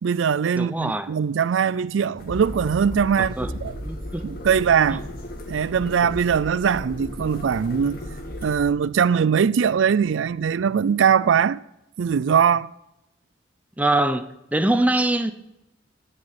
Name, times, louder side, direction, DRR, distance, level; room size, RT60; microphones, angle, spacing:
voice 1, 0.0-3.3 3.6-3.7 4.2-5.0 5.5-8.0 8.4-11.6 12.0-12.7, right 7 dB, 80° right, 0.4 m, -21 dB
voice 2, 0.5-1.1 3.2-3.5 3.8-4.2 4.9-5.0 13.8-15.3, right 1 dB, 10° right, 0.8 m, -23 dB
sound 1, 2.2-8.7, equal, 50° left, 2.1 m, -35 dB
17.5 x 6.7 x 7.7 m
head